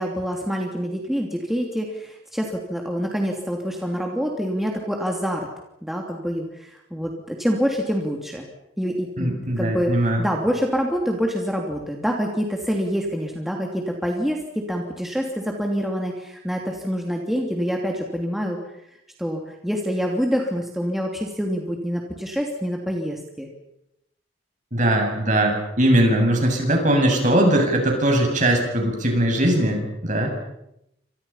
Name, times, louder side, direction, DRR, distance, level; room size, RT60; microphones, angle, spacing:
voice 1, 0.0-5.5 5.8-8.5 8.8-14.4 14.7-18.6 19.2-23.5, equal, ahead, 0 dB, 3.0 m, -26 dB
voice 2, 9.2-10.2 24.7-30.3, right 1 dB, 40° right, 2 dB, 7.6 m, -20 dB
29.5 x 26.5 x 5.8 m, 0.81 s
head